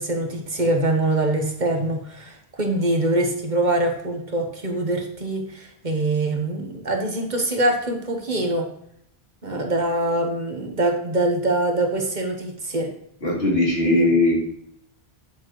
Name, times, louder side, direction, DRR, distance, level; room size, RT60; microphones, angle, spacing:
voice 1, 0.0-8.7 9.4-12.9, right 2 dB, 50° right, 3 dB, 1.3 m, -24 dB
voice 2, 13.2-14.4, left 2 dB, 80° left, -5 dB, 3.4 m, -19 dB
9.1 x 7.2 x 3.1 m, 0.70 s
omnidirectional pair, 1.0 m